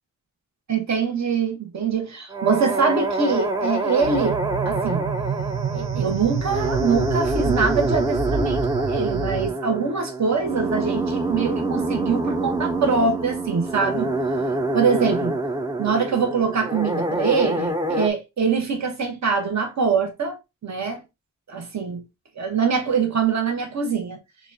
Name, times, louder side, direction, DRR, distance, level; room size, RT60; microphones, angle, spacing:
voice 1, 0.7-4.4 4.6-5.0 5.7-14.1 14.7-15.4 15.8-20.4 20.6-21.0 21.5-22.0 22.4-24.2, right 5 dB, 55° right, 1.2 m, -23 dB
sound 1, 2.3-18.1, right 2 dB, 10° right, 0.6 m, -26 dB
sound 2, 4.0-9.5, right 5 dB, 90° right, 0.8 m, -28 dB
6.3 x 2.4 x 2.7 m
wide cardioid pair, 105°, 33 cm